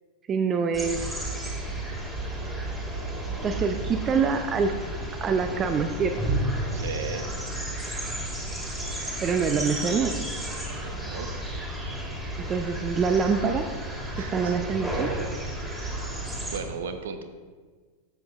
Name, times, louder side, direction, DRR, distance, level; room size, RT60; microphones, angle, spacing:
voice 1, 0.3-1.2 3.3-4.8 5.2-6.2 9.2-10.3 12.4-13.7 14.3-15.1, right 5 dB, 25° right, 7 dB, 0.5 m, -25 dB
sound 1, 0.7-16.6, right 1 dB, 5° right, 2.1 m, -32 dB
voice 2, 6.7-7.3 10.7-11.3 14.1-14.6 15.8-17.2, right 5 dB, 60° right, 7 dB, 0.9 m, -37 dB
12.5 x 7.7 x 2.4 m, 1.5 s
figure-of-eight pair, 90°, 0 cm